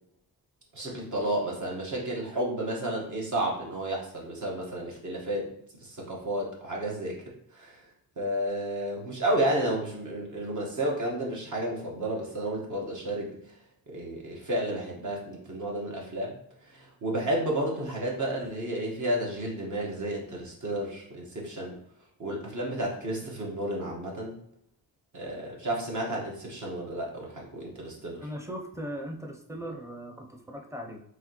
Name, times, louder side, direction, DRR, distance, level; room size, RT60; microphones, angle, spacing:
voice 1, 0.7-5.5 5.8-7.2 7.5-7.8 8.2-13.4 13.9-16.4 16.7-21.7 22.2-24.4 25.1-28.3, right 1 dB, 55° right, -2 dB, 1.5 m, -31 dB
voice 2, 28.2-31.0, equal, 10° right, 3 dB, 0.7 m, -39 dB
4.7 x 3.3 x 3.0 m, 0.72 s
wide cardioid pair, 100°, 36 cm